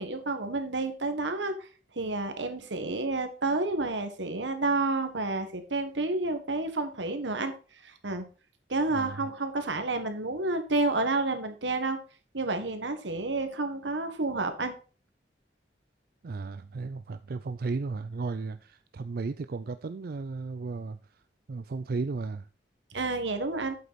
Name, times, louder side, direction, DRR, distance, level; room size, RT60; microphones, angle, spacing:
voice 1, 0.0-1.7 1.9-7.5 7.8-8.3 8.7-12.0 12.3-14.7 22.9-23.8, right 2 dB, 85° right, 1.5 m, -30 dB
voice 2, 8.9-9.3 16.2-21.0 21.5-22.5, right 4 dB, 55° right, 0.4 m, -34 dB
8.3 x 7.6 x 4.2 m
head